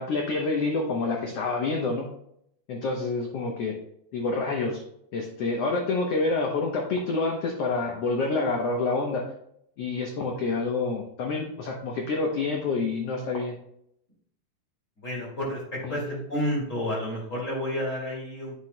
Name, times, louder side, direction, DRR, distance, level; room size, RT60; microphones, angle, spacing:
voice 1, 0.0-2.1 2.7-3.7 4.1-4.8 5.1-9.2 9.8-13.6 15.8-16.2, left 3 dB, 80° left, 1 dB, 1.3 m, -27 dB
voice 2, 15.0-16.0 16.3-18.5, equal, 25° left, -4 dB, 2.3 m, -30 dB
9.5 x 6.7 x 2.2 m, 0.73 s
omnidirectional pair, 4.1 m